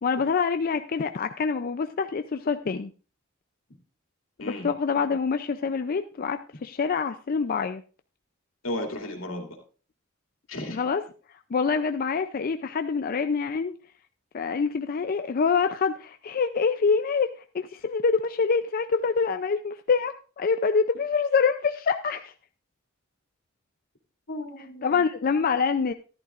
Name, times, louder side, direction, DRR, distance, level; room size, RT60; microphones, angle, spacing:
voice 1, 0.0-2.9 4.5-7.8 10.7-11.0 11.5-13.7 14.3-22.3 24.8-25.9, left 5 dB, 45° left, 8 dB, 0.4 m, -26 dB
voice 2, 8.6-9.6 10.5-10.8 24.3-25.0, left 1 dB, 80° left, 2 dB, 2.5 m, -34 dB
13.5 x 11.5 x 2.5 m, 0.37 s
head